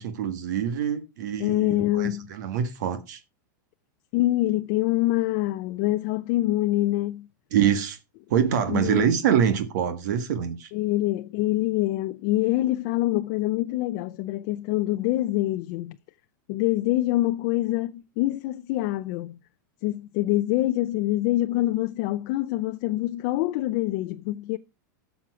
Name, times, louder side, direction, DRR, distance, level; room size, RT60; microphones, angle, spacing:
voice 1, 0.0-3.2 7.5-8.0 8.3-10.7, right 8 dB, 60° right, 1.6 m, -25 dB
voice 2, 1.4-2.3 4.1-7.3 8.7-9.1 10.7-16.0 16.5-19.4 19.8-24.6, left 16 dB, 40° left, 0.5 m, -25 dB
12.5 x 7.2 x 4.8 m
supercardioid pair, 160°, 11 cm